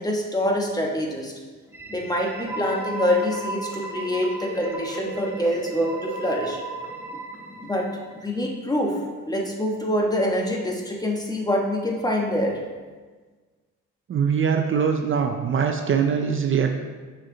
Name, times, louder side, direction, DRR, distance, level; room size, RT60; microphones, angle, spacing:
voice 1, 0.0-1.3 1.9-6.6 7.6-7.9 8.2-9.0 9.3-12.6, left 1 dB, 15° left, 0 dB, 1.2 m, -25 dB
sound 1, 1.7-8.5, right 2 dB, 10° right, 1.3 m, -35 dB
voice 2, 14.1-16.7, right 7 dB, 45° right, 4 dB, 0.6 m, -22 dB
6.4 x 5.8 x 3.9 m, 1.4 s
cardioid pair, 90°, 30 cm